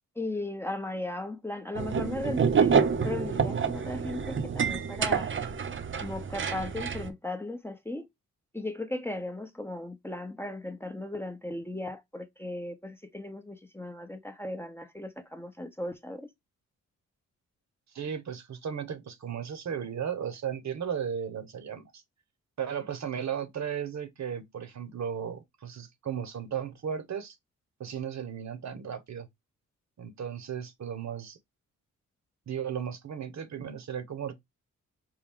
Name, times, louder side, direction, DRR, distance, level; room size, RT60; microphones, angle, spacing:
voice 1, 0.2-5.3 6.0-8.1 8.5-16.3, left 1 dB, 5° left, 0.8 m, -36 dB
sound 1, 1.8-7.1, right 6 dB, 40° right, 0.7 m, -27 dB
voice 2, 17.9-21.8 22.6-27.3 27.8-29.3 30.0-31.4 32.5-34.3, right 8 dB, 60° right, 1.1 m, -35 dB
4.6 x 2.2 x 3.6 m
cardioid pair, 65°, 32 cm